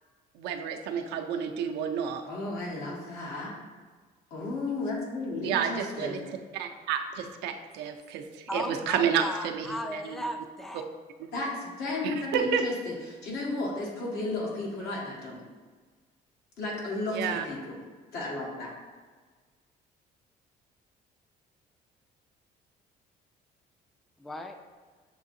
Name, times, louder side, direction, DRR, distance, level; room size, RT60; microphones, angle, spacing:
voice 1, 0.3-2.3 5.4-6.2 6.5-9.7 9.9-10.2 11.2-11.3 12.0-12.7 17.1-17.4, right 7 dB, 85° right, 5 dB, 0.5 m, -30 dB
voice 2, 2.2-3.5 4.3-6.3 11.3-15.4 16.6-17.8 18.1-18.7, left 2 dB, 80° left, -3 dB, 1.3 m, -34 dB
voice 3, 8.5-10.8 24.2-24.6, left 1 dB, ahead, 5 dB, 0.3 m, -36 dB
6.9 x 2.7 x 2.6 m, 1.4 s
cardioid pair, 110°, 17 cm